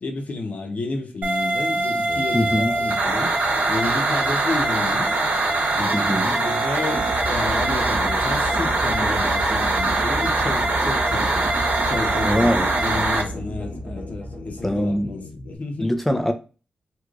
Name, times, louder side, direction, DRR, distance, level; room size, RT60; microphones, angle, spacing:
voice 1, 0.0-3.3 3.6-5.2 5.7-11.5 11.9-15.9, left 3 dB, 55° left, 0.9 m, -31 dB
sound 1, 1.2-13.2, right 2 dB, 60° right, 0.9 m, -22 dB
sound 2, 2.1-15.6, left 3 dB, 85° left, 0.6 m, -40 dB
voice 2, 2.3-2.7 5.9-6.3 12.2-12.8 14.6-15.1 15.8-16.3, equal, 5° left, 0.6 m, -22 dB
sound 3, 6.9-15.1, right 1 dB, 30° right, 1.1 m, -32 dB
3.3 x 3.0 x 2.4 m
wide cardioid pair, 85°, 3 cm